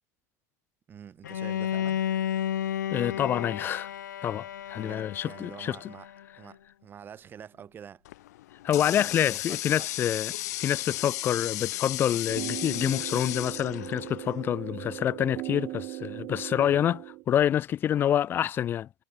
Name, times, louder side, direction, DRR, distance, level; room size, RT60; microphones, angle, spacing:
voice 1, 0.9-2.0 4.8-6.1 6.4-8.0 8.8-9.9, right 8 dB, 20° right, 6.0 m, -47 dB
Bowed string instrument, 1.2-6.2, left 10 dB, 85° left, 3.4 m, -32 dB
voice 2, 2.9-3.9 4.2-5.8 8.6-18.9, left 10 dB, 25° left, 0.5 m, -27 dB
Water tap faucet, 8.0-14.5, left 16 dB, 65° left, 1.3 m, -35 dB
sound 1, 12.3-17.2, right 21 dB, 40° right, 2.0 m, -38 dB
hypercardioid pair, 135°, 9 cm